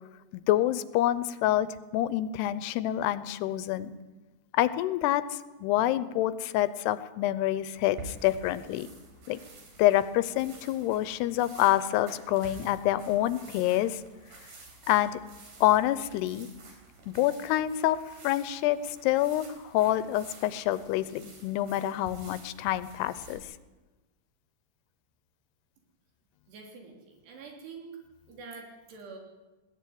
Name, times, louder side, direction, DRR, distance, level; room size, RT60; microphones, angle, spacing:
voice 1, 0.3-1.7 1.9-4.0 4.5-8.9 9.3-9.4 9.8-14.0 14.9-15.2 15.6-16.5 17.1-23.4, left 13 dB, 85° left, 15 dB, 2.9 m, -27 dB
sound 1, 7.8-23.4, right 3 dB, 55° right, 5.6 m, -50 dB
voice 2, 26.5-27.9 28.3-29.2, right 4 dB, 85° right, 1 dB, 5.5 m, -46 dB
20.0 x 14.0 x 9.5 m, 1.2 s
omnidirectional pair, 4.6 m